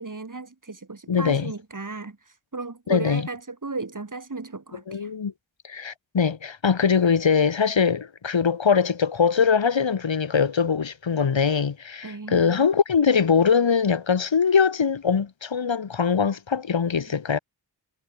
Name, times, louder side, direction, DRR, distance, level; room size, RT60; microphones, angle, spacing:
voice 1, 0.0-2.2 2.5-5.1 12.0-12.6, right 3 dB, 45° right, 6.4 m, -35 dB
voice 2, 1.1-1.5 2.9-3.2 4.9-5.3 5.6-17.4, left 6 dB, 85° left, 3.7 m, -22 dB
wide cardioid pair, 70°, 44 cm